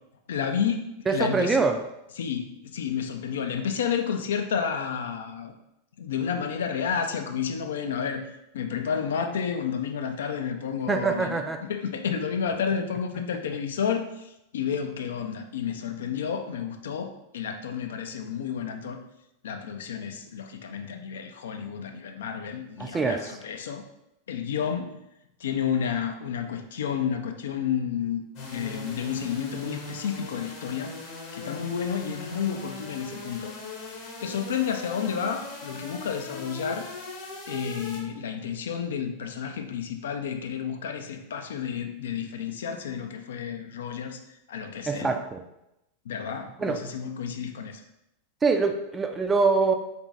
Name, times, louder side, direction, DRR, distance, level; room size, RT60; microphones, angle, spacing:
voice 1, 0.3-1.6 2.2-5.5 6.0-19.0 19.4-23.8 24.3-25.0 25.4-30.9 31.3-33.5 34.2-36.9 37.5-44.2 44.5-45.2 46.1-47.8, left 7 dB, 60° left, 6 dB, 0.3 m, -31 dB
voice 2, 1.1-1.8 10.9-11.6 22.8-23.2 44.9-45.4 46.6-46.8 48.4-49.7, right 4 dB, 15° right, 6 dB, 0.3 m, -24 dB
sound 1, 28.3-38.0, left 3 dB, 40° left, 0.9 m, -40 dB
3.7 x 2.5 x 3.4 m, 0.87 s
figure-of-eight pair, 90°, 0 cm